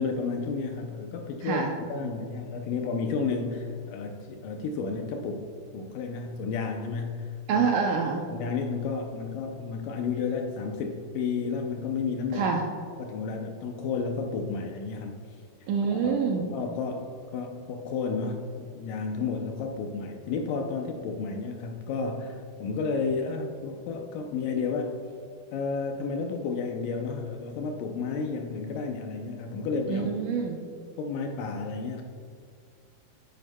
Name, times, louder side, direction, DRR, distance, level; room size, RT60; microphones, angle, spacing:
voice 1, 0.0-7.7 8.3-12.5 13.0-15.2 15.6-16.2 16.5-25.0 25.5-30.1 31.0-32.0, left 4 dB, 80° left, 3 dB, 2.0 m, -32 dB
voice 2, 1.4-1.7 7.5-8.3 12.3-12.7 15.7-16.5 29.9-30.6, right 5 dB, 80° right, 1 dB, 1.9 m, -26 dB
10.5 x 9.3 x 2.2 m, 2.2 s
omnidirectional pair, 4.2 m